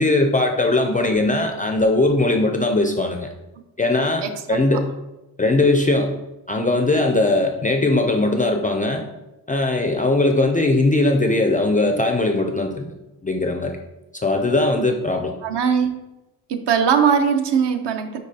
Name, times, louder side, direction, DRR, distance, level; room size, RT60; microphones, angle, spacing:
voice 1, 0.0-3.3 3.8-4.9 5.4-6.1 6.5-9.0 9.5-12.9 13.2-13.8 14.2-15.4, left 2 dB, 20° left, 3 dB, 0.3 m, -19 dB
voice 2, 4.2-4.6 15.4-16.0 16.5-18.2, right 7 dB, 65° right, 7 dB, 0.8 m, -20 dB
10.0 x 3.9 x 2.8 m, 0.99 s
cardioid pair, 145°, 46 cm